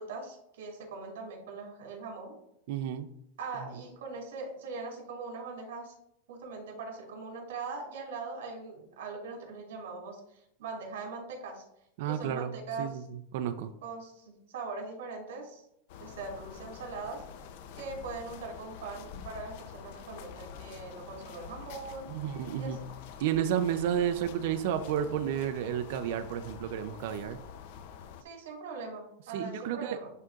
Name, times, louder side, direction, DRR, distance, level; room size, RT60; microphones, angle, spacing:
voice 1, 0.0-2.4 3.4-5.9 6.3-11.6 12.1-13.0 13.8-15.6 16.0-17.2 17.7-22.1 22.6-22.8 28.2-30.1, right 4 dB, 80° right, 2 dB, 2.5 m, -41 dB
voice 2, 2.7-3.1 3.6-3.7 12.0-13.7 22.1-22.8 23.2-27.4 29.3-30.0, right 9 dB, 60° right, 8 dB, 0.5 m, -32 dB
sound 1, 15.9-28.2, left 7 dB, 55° left, 0.6 m, -47 dB
11.0 x 3.8 x 2.4 m, 0.76 s
supercardioid pair, 155°, 0 cm